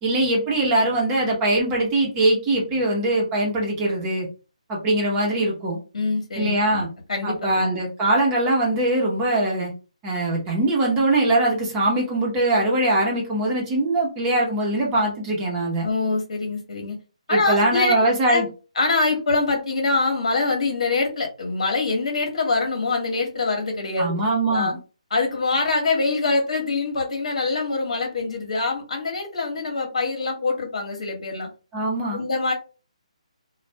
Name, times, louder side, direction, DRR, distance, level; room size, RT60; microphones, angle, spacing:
voice 1, 0.0-4.3 4.7-5.8 6.4-6.9 7.2-9.7 10.0-15.9 17.3-18.5 24.0-24.8 31.7-32.2, right 1 dB, 20° right, -2 dB, 1.0 m, -22 dB
voice 2, 5.9-7.7 15.8-17.0 17.3-17.9 18.3-18.4 18.7-24.1 24.4-24.7 25.1-31.5 32.1-32.5, left 3 dB, 65° left, 2 dB, 1.2 m, -24 dB
2.5 x 2.4 x 3.3 m, 0.34 s
figure-of-eight pair, 150°, 4 cm